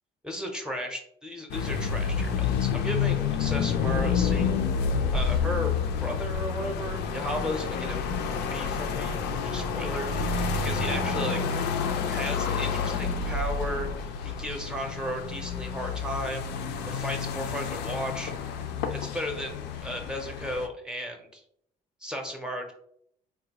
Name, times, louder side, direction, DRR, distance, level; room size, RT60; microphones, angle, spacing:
voice 1, 0.2-4.5 5.1-8.0 8.5-11.4 12.1-18.3 18.9-21.4 22.0-22.7, equal, 5° right, 2 dB, 0.6 m, -35 dB
sound 1, 1.5-20.7, left 6 dB, 80° left, 0.4 m, -29 dB
3.7 x 2.2 x 2.9 m, 0.68 s
cardioid pair, 110°, 17 cm